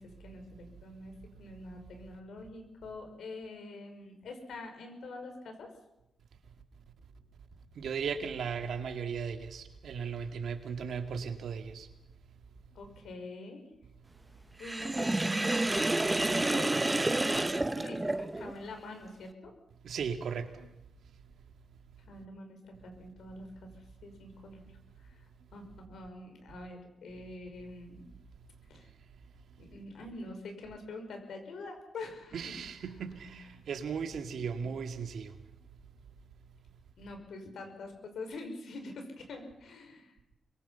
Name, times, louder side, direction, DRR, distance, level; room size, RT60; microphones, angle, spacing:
voice 1, 0.0-5.7 12.7-13.6 14.6-19.5 22.1-23.7 24.0-24.7 25.0-25.3 25.5-28.1 28.7-28.9 29.6-32.6 33.4-33.5 33.9-34.1 37.0-40.2, left 2 dB, 80° left, 5.7 m, -45 dB
voice 2, 7.8-11.9 19.8-20.7 32.3-35.4, right 6 dB, 75° right, 2.3 m, -37 dB
Sink (filling or washing), 14.6-18.6, right 2 dB, 20° right, 1.1 m, -29 dB
26.0 x 23.0 x 5.8 m
cardioid pair, 65°, 0 cm